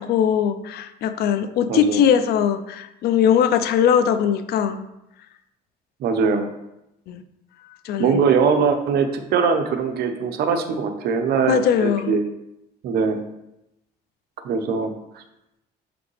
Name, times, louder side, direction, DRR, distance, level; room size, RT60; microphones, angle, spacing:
voice 1, 0.0-4.8 7.1-7.2 7.8-8.2 11.5-12.1, left 8 dB, 70° left, 11 dB, 0.5 m, -20 dB
voice 2, 1.7-2.1 6.0-6.5 8.0-12.2 12.8-13.2 14.4-14.9, right 5 dB, 70° right, 6 dB, 0.8 m, -21 dB
6.0 x 5.0 x 3.3 m, 0.87 s
cardioid pair, 110°, 17 cm